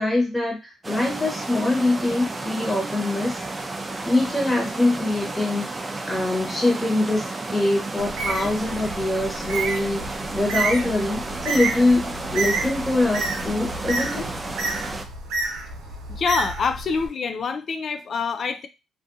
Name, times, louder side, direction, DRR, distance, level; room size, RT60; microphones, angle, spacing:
voice 1, 0.0-3.4 4.0-5.7 6.0-14.3, left 2 dB, 10° left, -1 dB, 1.1 m, -23 dB
sound 1, 0.8-15.0, right 2 dB, 25° right, 0.5 m, -32 dB
Bird, 8.0-17.1, right 3 dB, 85° right, 0.6 m, -30 dB
voice 2, 16.1-18.7, left 5 dB, 55° left, 8 dB, 0.3 m, -26 dB
2.5 x 2.3 x 2.6 m, 0.26 s
supercardioid pair, 55°, 0 cm